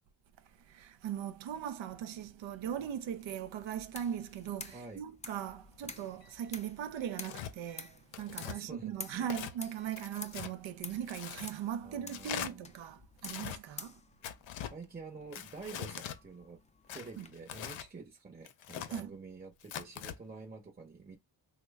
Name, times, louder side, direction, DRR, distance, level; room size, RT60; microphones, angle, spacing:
voice 1, 0.6-14.0 17.2-17.3 18.9-19.1, right 9 dB, 75° right, 0.6 m, -39 dB
sound 1, 2.7-17.3, left 4 dB, 15° left, 0.4 m, -51 dB
voice 2, 4.7-5.0 8.4-9.3 10.0-10.1 11.8-12.7 13.6-13.9 14.6-16.6 16.9-21.2, right 4 dB, 20° right, 0.8 m, -48 dB
sound 2, 6.1-11.2, left 2 dB, 50° left, 0.9 m, -65 dB
Tearing, 7.2-7.5 8.1-8.6 9.2-9.5 10.0-10.5 11.1-11.5 12.1-12.5 13.2-13.6 14.2-14.7 15.3-16.2 16.9-17.9 18.4-19.0 19.6-20.2, left 10 dB, 80° left, 0.6 m, -42 dB
3.0 x 2.2 x 3.4 m
cardioid pair, 65°, 46 cm